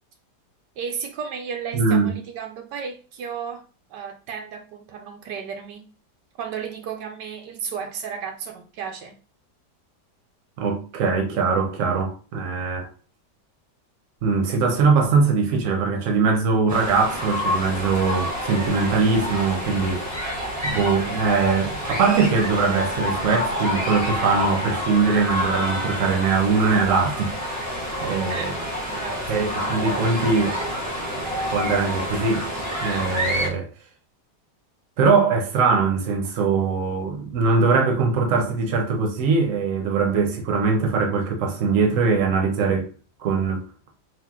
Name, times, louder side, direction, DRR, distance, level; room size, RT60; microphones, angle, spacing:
voice 1, 0.8-3.6 3.9-5.9 6.4-9.1 28.3-29.4, right 6 dB, 80° right, 1.3 m, -34 dB
voice 2, 1.7-2.2 10.6-12.9 14.2-20.0 20.6-27.3 28.0-28.5 29.3-30.6 31.5-32.5 32.8-33.7 35.0-42.9 43.2-43.6, right 4 dB, 55° right, 1.1 m, -21 dB
sound 1, 16.7-33.5, equal, 10° right, 1.0 m, -28 dB
3.5 x 2.6 x 3.6 m
omnidirectional pair, 1.8 m